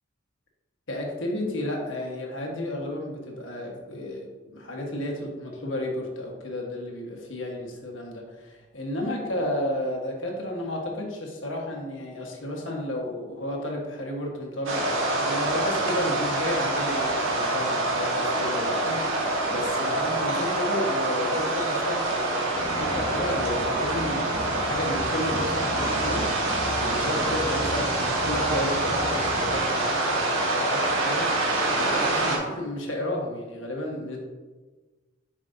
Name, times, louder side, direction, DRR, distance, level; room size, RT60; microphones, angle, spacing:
voice 1, 0.9-34.2, left 1 dB, 75° left, 0 dB, 1.3 m, -32 dB
sound 1, 14.7-32.4, right 2 dB, 90° right, 1.4 m, -26 dB
sound 2, 22.5-29.6, equal, 30° right, 1.6 m, -36 dB
7.4 x 5.6 x 2.6 m, 1.3 s
head